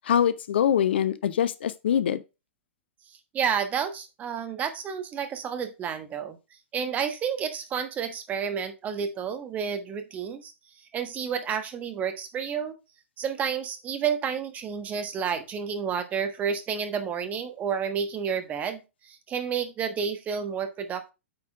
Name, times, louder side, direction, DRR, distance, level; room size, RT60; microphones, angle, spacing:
voice 1, 0.1-2.2, left 9 dB, 55° left, 0.6 m, -23 dB
voice 2, 3.3-6.4 6.7-10.5 10.9-12.7 13.2-21.1, right 7 dB, 20° right, 1.3 m, -30 dB
8.7 x 4.3 x 4.9 m
figure-of-eight pair, 105°, 7 cm